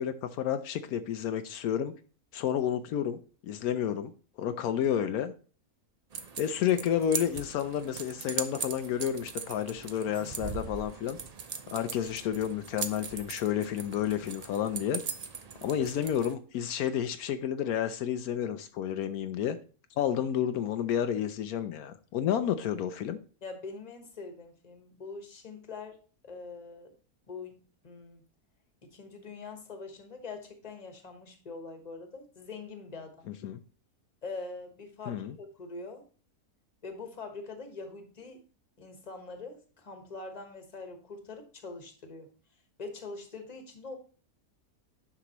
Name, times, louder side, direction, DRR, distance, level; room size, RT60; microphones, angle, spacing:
voice 1, 0.0-1.9 2.3-4.1 4.4-5.3 6.4-11.2 11.7-15.0 15.6-19.6 20.0-23.2 33.4-33.6 35.1-35.4, left 9 dB, 80° left, 1.1 m, -30 dB
sound 1, 6.1-16.3, right 6 dB, 60° right, 0.4 m, -40 dB
voice 2, 23.4-26.9 27.3-28.2 28.8-33.3 34.2-36.0 36.8-38.4 38.8-42.3 42.8-44.0, left 3 dB, 30° left, 1.3 m, -43 dB
9.9 x 5.8 x 3.0 m
omnidirectional pair, 1.5 m